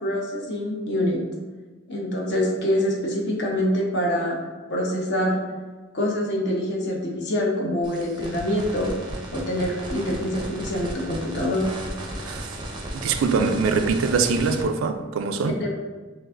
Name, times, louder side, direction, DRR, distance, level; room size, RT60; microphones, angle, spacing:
voice 1, 0.0-1.2 1.9-4.4 4.7-5.4 5.9-9.0 9.3-11.6 15.6-15.7, left 1 dB, 60° left, 0.9 m, -25 dB
sound 1, 7.8-14.6, right 1 dB, 25° right, 0.5 m, -35 dB
voice 2, 12.2-12.6 12.9-15.6, right 4 dB, 75° right, 0.4 m, -23 dB
6.1 x 2.5 x 2.5 m
head